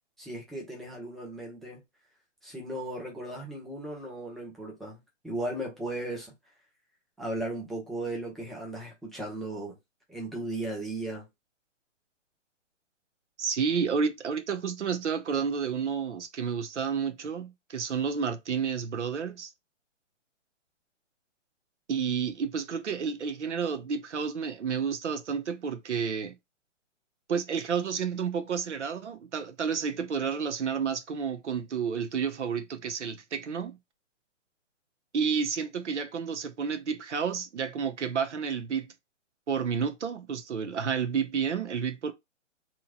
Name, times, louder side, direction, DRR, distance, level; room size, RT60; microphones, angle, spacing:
voice 1, 0.2-1.8 2.4-5.0 5.2-6.3 7.2-9.8 10.1-11.3, right 1 dB, ahead, 0.4 m, -36 dB
voice 2, 13.4-19.5 21.9-26.4 27.3-33.8 35.1-38.9 39.5-42.1, right 6 dB, 65° right, 0.7 m, -30 dB
2.7 x 2.1 x 2.7 m
hypercardioid pair, 175°, 38 cm